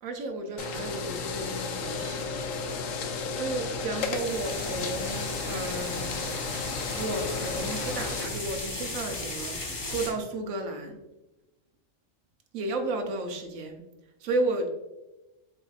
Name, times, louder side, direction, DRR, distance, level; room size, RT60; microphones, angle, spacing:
voice 1, 0.0-2.3 3.0-6.6 6.9-11.0 12.5-13.8 14.2-14.7, right 2 dB, 85° right, 4 dB, 1.1 m, -33 dB
sound 1, 0.6-8.3, left 4 dB, 80° left, 1.0 m, -33 dB
sound 2, 4.1-10.1, left 2 dB, 30° left, 0.4 m, -36 dB
7.4 x 2.6 x 2.4 m, 1.0 s
omnidirectional pair, 1.4 m